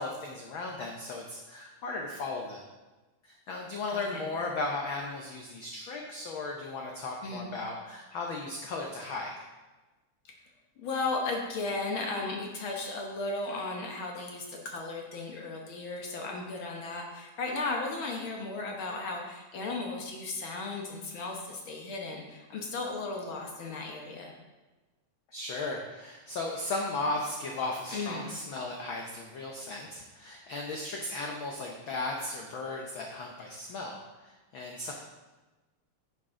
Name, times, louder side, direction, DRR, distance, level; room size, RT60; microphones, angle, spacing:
voice 1, 0.0-2.6 3.2-9.3 25.3-34.0 34.2-34.9, left 2 dB, 75° left, 1 dB, 1.1 m, -36 dB
voice 2, 3.9-4.2 7.2-7.5 10.8-24.3 27.9-28.3, left 3 dB, 60° left, 0 dB, 1.4 m, -35 dB
10.5 x 6.6 x 3.7 m, 1.2 s
omnidirectional pair, 3.4 m